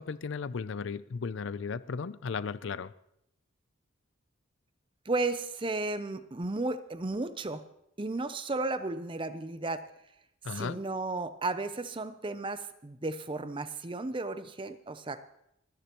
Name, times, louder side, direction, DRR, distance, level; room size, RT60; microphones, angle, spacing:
voice 1, 0.0-2.9 10.4-10.8, left 5 dB, 60° left, 17 dB, 0.4 m, -35 dB
voice 2, 5.1-7.6 8.0-9.8 10.5-15.2, right 2 dB, 25° right, 12 dB, 0.5 m, -34 dB
29.5 x 10.0 x 3.0 m, 0.79 s
head